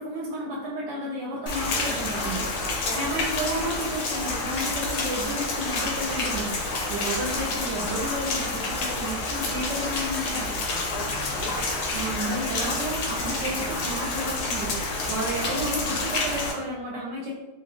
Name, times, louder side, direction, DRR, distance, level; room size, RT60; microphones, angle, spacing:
voice 1, 0.0-2.5 2.9-6.5 6.9-10.5 11.9-17.3, right 1 dB, 80° right, -4 dB, 1.2 m, -32 dB
Rain, 1.5-16.5, left 2 dB, 85° left, 1.3 m, -29 dB
voice 2, 2.1-3.1 9.9-10.0 10.5-11.6 12.2-12.4 15.4-15.5, left 2 dB, 70° left, -2 dB, 1.1 m, -39 dB
3.1 x 2.3 x 2.4 m, 1.1 s
omnidirectional pair, 1.9 m